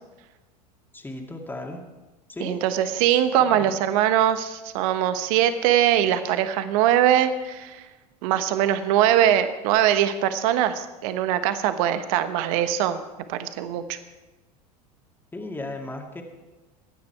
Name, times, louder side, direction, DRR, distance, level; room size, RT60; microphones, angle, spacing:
voice 1, 0.9-1.9 2.3-2.6 3.0-3.8 15.3-16.2, left 2 dB, 10° left, 2 dB, 2.4 m, -36 dB
voice 2, 2.4-7.8 8.2-13.0 13.3-14.0, right 11 dB, 60° right, 10 dB, 1.2 m, -22 dB
23.5 x 9.7 x 4.7 m, 1.1 s
hypercardioid pair, 85°, 20 cm